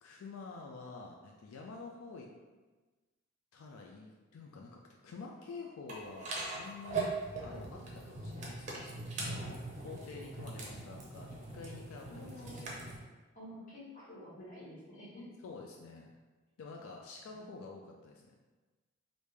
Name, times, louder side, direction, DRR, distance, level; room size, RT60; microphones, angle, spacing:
voice 1, 0.0-2.3 3.5-12.6 15.4-16.1 16.6-18.4, left 4 dB, 90° left, 0 dB, 0.4 m, -49 dB
sound 1, 5.9-13.0, right 3 dB, 35° right, 0.6 m, -41 dB
voice 2, 12.1-12.7 13.3-15.2 17.3-17.9, left 1 dB, 40° left, -9 dB, 1.4 m, -50 dB
3.2 x 2.6 x 3.3 m, 1.3 s
head